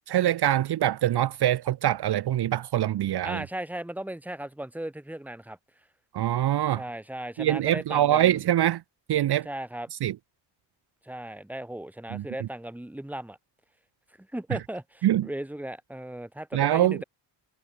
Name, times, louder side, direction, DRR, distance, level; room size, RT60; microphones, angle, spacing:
voice 1, 0.1-3.4 6.1-6.8 7.4-8.8 9.1-9.5 10.0-10.1 12.1-12.2 15.0-15.3 16.5-17.0, right 12 dB, 65° right, 0.7 m, -24 dB
voice 2, 3.2-5.6 6.7-8.4 9.4-9.9 11.0-13.4 14.2-17.0, right 1 dB, 5° right, 1.7 m, -36 dB
wide cardioid pair, 140°, 43 cm